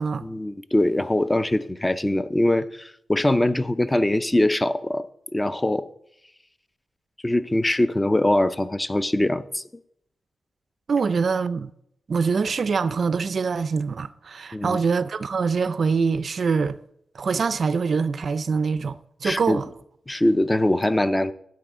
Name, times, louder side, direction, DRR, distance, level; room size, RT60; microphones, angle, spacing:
voice 1, 0.2-5.1 5.3-5.9 7.2-9.6 14.5-14.8 19.2-19.6 20.1-21.3, left 1 dB, 15° left, 0.5 m, -22 dB
voice 2, 10.9-11.7 12.1-16.8 17.1-19.7, right 5 dB, 55° right, 0.4 m, -24 dB
12.0 x 9.6 x 3.6 m
cardioid pair, 80°, 0 cm